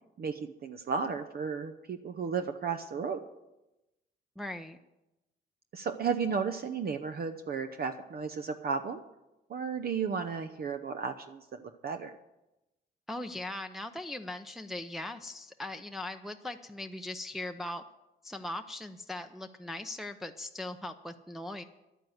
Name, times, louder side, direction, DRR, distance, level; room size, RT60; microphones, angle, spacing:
voice 1, 0.2-3.2 5.7-9.0 9.5-12.2, right 6 dB, 50° right, 8 dB, 0.8 m, -34 dB
voice 2, 4.4-4.8 13.1-17.8 18.2-21.6, left 1 dB, ahead, 5 dB, 0.6 m, -39 dB
11.0 x 9.3 x 7.9 m, 0.97 s
cardioid pair, 90°, 20 cm